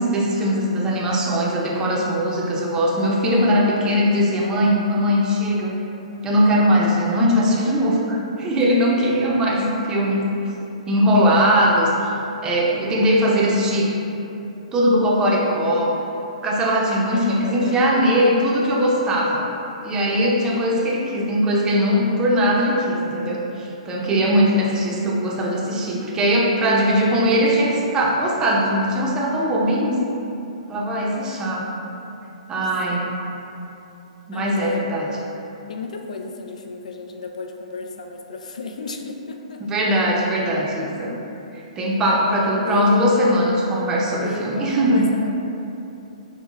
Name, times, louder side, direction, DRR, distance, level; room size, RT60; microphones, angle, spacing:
voice 1, 0.0-5.7 6.2-10.2 10.9-11.9 12.4-13.9 14.7-15.9 16.4-19.5 19.8-30.0 30.7-31.7 32.5-33.1 34.3-35.1 39.6-41.2 41.8-45.1, equal, 20° right, -4 dB, 0.5 m, -20 dB
voice 2, 3.3-3.8 17.1-18.3 32.9-33.0 34.3-34.8 35.7-39.6 42.1-43.1 44.1-45.4, left 3 dB, 85° left, 3 dB, 0.3 m, -33 dB
5.3 x 2.1 x 2.4 m, 2.9 s
hypercardioid pair, 130°, 4 cm